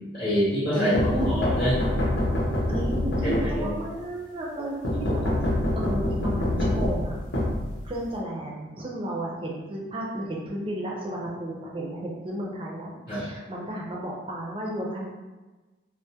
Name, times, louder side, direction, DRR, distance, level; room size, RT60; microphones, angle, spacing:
voice 1, 0.0-0.9 1.3-1.8 3.2-3.7 13.1-13.2, equal, 40° left, -10 dB, 0.7 m, -26 dB
voice 2, 0.7-1.3 2.7-7.1 7.8-15.0, right 1 dB, 25° right, -3 dB, 0.4 m, -33 dB
sound 1, 1.0-3.9 4.8-8.2, left 1 dB, 75° left, 0.7 m, -26 dB
2.2 x 2.0 x 2.7 m, 1.2 s
head